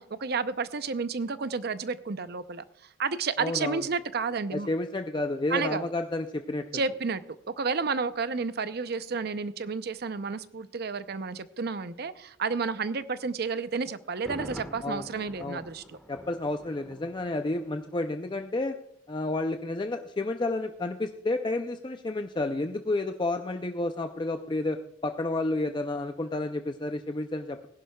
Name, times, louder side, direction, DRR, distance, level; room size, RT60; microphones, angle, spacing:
voice 1, 0.0-2.6 3.0-4.7 5.5-5.9 6.7-7.2 7.6-15.8, right 4 dB, 55° right, 13 dB, 0.6 m, -31 dB
voice 2, 3.4-3.8 4.5-6.8 14.8-15.1 15.4-15.6 16.1-18.8 19.1-27.7, left 2 dB, 25° left, 6 dB, 0.5 m, -31 dB
Thunder, 14.1-18.0 18.3-18.4, equal, ahead, 1.4 m, -46 dB
20.0 x 11.0 x 2.3 m, 0.76 s
head